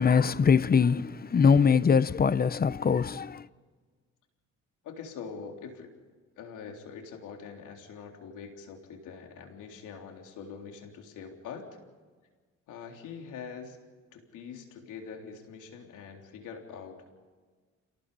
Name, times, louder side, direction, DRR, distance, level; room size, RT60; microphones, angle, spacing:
voice 1, 0.0-3.5, left 6 dB, 30° left, 0.8 m, -23 dB
voice 2, 4.8-5.9 6.4-11.6 12.7-13.8 14.1-17.1, left 6 dB, 85° left, 3.7 m, -44 dB
28.5 x 18.5 x 5.5 m
cardioid pair, 90°, 30 cm